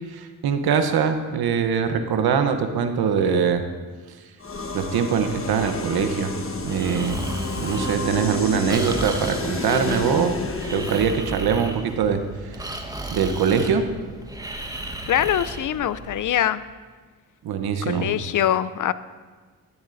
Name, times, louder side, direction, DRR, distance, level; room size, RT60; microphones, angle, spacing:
voice 1, 0.1-3.6 4.7-6.3 6.6-7.2 7.6-10.4 10.7-12.7 13.1-13.9 17.4-18.1, right 6 dB, 80° right, 8 dB, 0.9 m, -23 dB
sound 1, 4.4-11.3, left 3 dB, 35° left, 1.2 m, -30 dB
Breathing, 6.6-16.3, right 1 dB, 10° right, 1.2 m, -34 dB
voice 2, 15.1-16.6 17.8-18.9, left 11 dB, 55° left, 16 dB, 0.5 m, -23 dB
13.5 x 10.0 x 2.6 m, 1.4 s
supercardioid pair, 45°, 37 cm